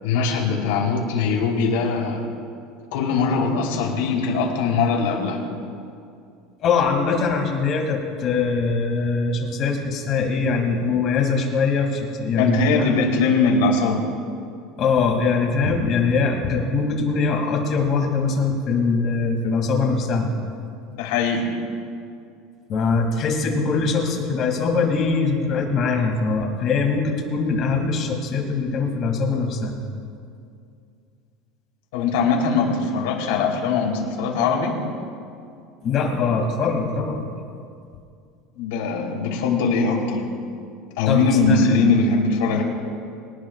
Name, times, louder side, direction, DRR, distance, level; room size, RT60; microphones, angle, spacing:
voice 1, 0.0-2.2 2.9-5.4 12.4-14.1 21.0-21.5 31.9-34.8 38.5-40.3 41.0-42.6, left 4 dB, 90° left, 0 dB, 3.5 m, -21 dB
voice 2, 6.6-12.6 14.8-20.3 22.7-29.8 35.8-37.3 41.1-41.8, left 4 dB, 35° left, 1 dB, 2.6 m, -22 dB
24.5 x 19.0 x 2.5 m, 2.4 s
cardioid pair, 170°, 0 cm